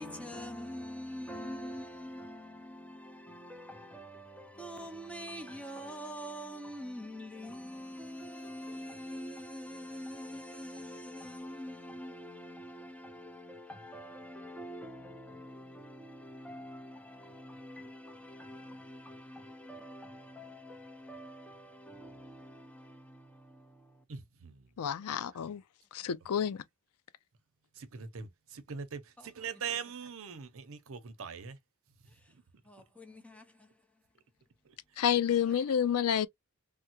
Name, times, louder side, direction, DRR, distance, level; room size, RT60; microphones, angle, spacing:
voice 1, 0.0-24.0 29.2-29.6 32.1-32.3 32.6-33.7 35.3-35.5, equal, 5° left, 0.7 m, -45 dB
voice 2, 24.1-24.7 25.0-25.2 27.8-31.6 32.3-32.4 35.5-35.6, right 6 dB, 65° right, 0.7 m, -42 dB
voice 3, 24.8-25.6 25.9-26.6 35.0-36.3, left 8 dB, 80° left, 0.4 m, -29 dB
3.5 x 2.1 x 2.8 m
head